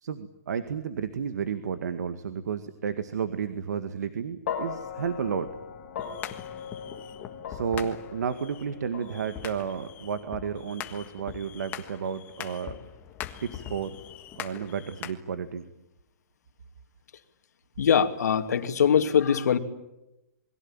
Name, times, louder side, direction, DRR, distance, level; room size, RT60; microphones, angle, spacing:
voice 1, 0.0-5.5 7.5-12.8 13.4-13.9 14.4-15.6, right 7 dB, 85° right, 10 dB, 2.0 m, -32 dB
sound 1, 4.5-12.8, left 7 dB, 50° left, 5.2 m, -40 dB
sound 2, 6.0-15.1, left 11 dB, 20° left, 1.6 m, -42 dB
voice 2, 17.8-19.6, left 8 dB, 75° left, 6 dB, 2.7 m, -22 dB
28.5 x 22.0 x 9.0 m, 0.94 s
hypercardioid pair, 165°, 9 cm